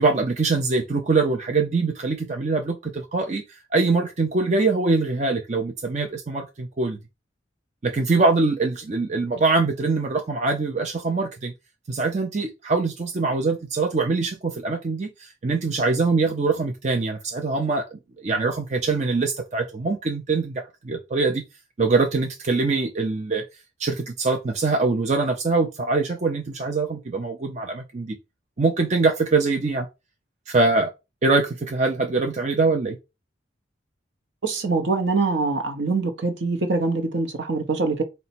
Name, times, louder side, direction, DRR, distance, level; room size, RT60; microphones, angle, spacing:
voice 1, 0.0-3.4 3.7-7.0 7.8-11.5 11.9-21.4 21.8-23.4 23.8-28.2 28.6-29.9 30.5-30.9 31.2-33.0, right 3 dB, 35° right, 0.5 m, -23 dB
voice 2, 34.4-38.0, right 3 dB, 65° right, 0.8 m, -24 dB
4.0 x 2.2 x 4.2 m
head